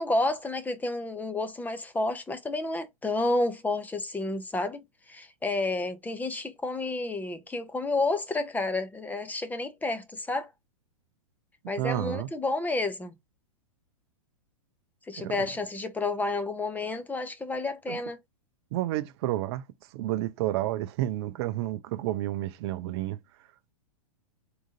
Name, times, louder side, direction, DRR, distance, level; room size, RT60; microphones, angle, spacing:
voice 1, 0.0-4.8 5.1-10.5 11.7-13.1 15.1-18.2, left 2 dB, 10° left, 0.7 m, -30 dB
voice 2, 11.8-12.3 15.1-15.5 17.9-18.0 18.7-19.6 19.9-23.2, right 14 dB, 45° right, 0.5 m, -30 dB
3.8 x 3.6 x 2.7 m
hypercardioid pair, 110°, 18 cm